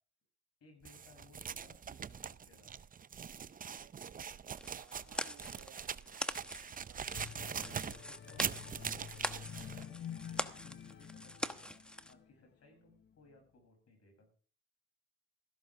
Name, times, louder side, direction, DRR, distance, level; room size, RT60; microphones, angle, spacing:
voice 1, 0.6-2.9 7.3-11.8 12.1-14.3, left 2 dB, 50° left, 3 dB, 7.6 m, -63 dB
sound 1, 0.8-9.8, right 7 dB, 25° right, 0.6 m, -42 dB
voice 2, 3.7-4.3 4.6-7.3, right 9 dB, 60° right, 7 dB, 1.8 m, -63 dB
sound 2, 4.6-12.1, equal, 5° left, 1.0 m, -43 dB
sound 3, 7.1-12.4 12.9-13.1, left 8 dB, 35° left, 0.8 m, -49 dB
14.5 x 13.0 x 3.6 m, 0.43 s
supercardioid pair, 65°, 31 cm